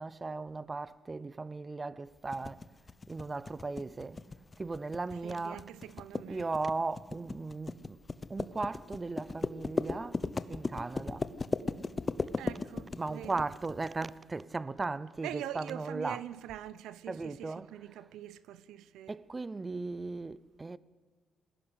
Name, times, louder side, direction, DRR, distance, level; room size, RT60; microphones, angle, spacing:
voice 1, 0.0-2.7 3.1-4.2 4.6-5.7 6.3-8.0 8.3-11.3 13.0-16.2 17.1-17.8 19.1-20.8, right 3 dB, 25° right, 0.6 m, -37 dB
sound 1, 2.3-13.9, left 3 dB, 30° left, 0.9 m, -36 dB
voice 2, 5.1-6.5 12.4-13.4 15.2-19.2, right 12 dB, 90° right, 0.8 m, -44 dB
20.5 x 16.0 x 8.2 m
cardioid pair, 90°, 0 cm